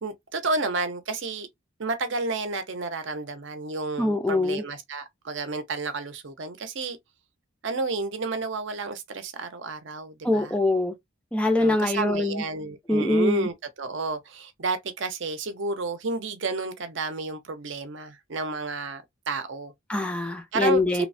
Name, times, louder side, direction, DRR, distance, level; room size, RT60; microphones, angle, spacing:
voice 1, 0.0-1.5 1.8-7.0 7.6-10.5 11.6-19.7 20.5-21.1, right 3 dB, 60° right, 0.6 m, -31 dB
voice 2, 4.0-4.6 10.2-10.9 11.3-12.4 12.9-13.5 19.9-21.1, left 2 dB, 5° left, 0.3 m, -23 dB
3.0 x 2.1 x 2.5 m
head